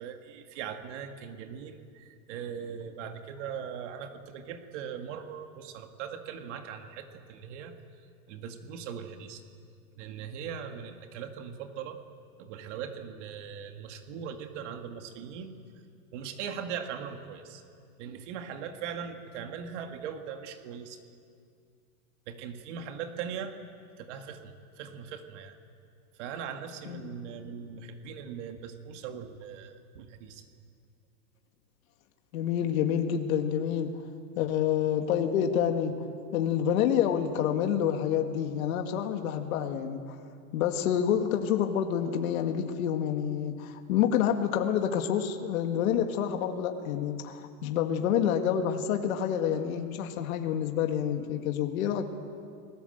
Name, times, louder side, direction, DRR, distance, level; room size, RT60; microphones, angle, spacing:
voice 1, 0.0-7.7 8.3-9.4 10.0-12.0 12.4-15.6 16.1-17.6 18.0-21.0 22.3-23.6 24.0-25.6 26.1-30.5, right 7 dB, 50° right, 6 dB, 2.0 m, -40 dB
voice 2, 32.3-33.9 34.4-35.9 36.3-40.2 40.5-52.1, left 9 dB, 65° left, 5 dB, 2.0 m, -28 dB
27.0 x 19.5 x 7.9 m, 2.3 s
supercardioid pair, 165°, 45 cm